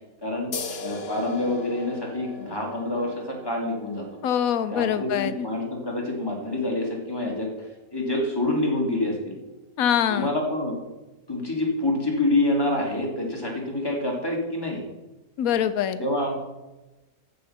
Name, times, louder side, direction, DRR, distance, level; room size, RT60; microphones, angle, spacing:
voice 1, 0.2-0.5 0.8-4.1 4.7-7.5 7.9-9.3 10.1-10.8 11.3-14.8 16.0-16.3, left 1 dB, 15° left, -1 dB, 2.3 m, -27 dB
sound 1, 0.5-7.7, left 3 dB, 50° left, 1.1 m, -40 dB
voice 2, 4.2-5.5 9.8-10.3 15.4-16.1, left 9 dB, 80° left, 12 dB, 1.1 m, -24 dB
14.0 x 5.4 x 5.7 m, 1.1 s
omnidirectional pair, 1.5 m